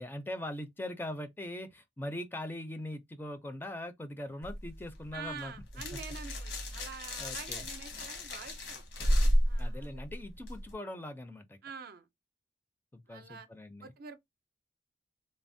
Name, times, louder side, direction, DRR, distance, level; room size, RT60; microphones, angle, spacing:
voice 1, 0.0-6.0 7.2-7.7 9.6-11.6 12.9-13.9, left 1 dB, 10° left, 0.4 m, -41 dB
sound 1, 4.4-10.7, equal, 80° left, 1.0 m, -32 dB
voice 2, 5.1-8.8 9.5-10.0 11.6-12.1 13.1-13.5 13.8-14.2, right 5 dB, 55° right, 0.4 m, -46 dB
3.2 x 2.0 x 2.5 m
head